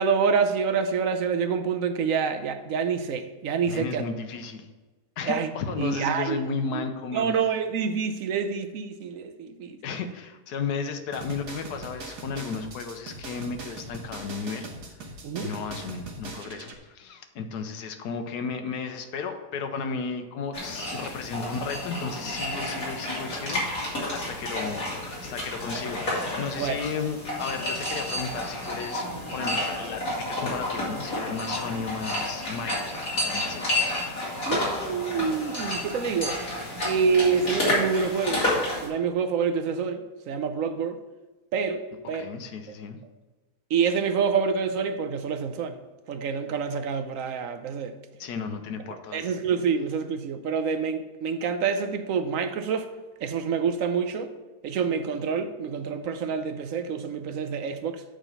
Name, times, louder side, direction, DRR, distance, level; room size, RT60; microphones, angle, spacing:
voice 1, 0.0-4.0 5.3-5.5 5.8-6.4 6.7-6.8 7.1-9.8 15.2-15.5 26.6-26.8 34.5-36.4 36.8-38.4 38.8-41.0 41.5-42.3 43.7-45.8 46.1-48.0 49.1-52.9 53.2-54.3 54.6-58.0, right 6 dB, 65° right, 1.0 m, -27 dB
voice 2, 3.6-4.7 5.2-7.3 9.8-14.8 15.4-29.1 29.3-33.9 42.1-43.0 48.2-49.3, left 5 dB, 80° left, 1.3 m, -34 dB
sound 1, 11.1-16.8, right 3 dB, 80° right, 1.7 m, -41 dB
sound 2, 20.5-38.9, left 1 dB, 60° left, 2.8 m, -30 dB
Bowed string instrument, 29.1-34.7, left 4 dB, 35° right, 1.5 m, -46 dB
8.2 x 3.8 x 6.8 m
omnidirectional pair, 1.7 m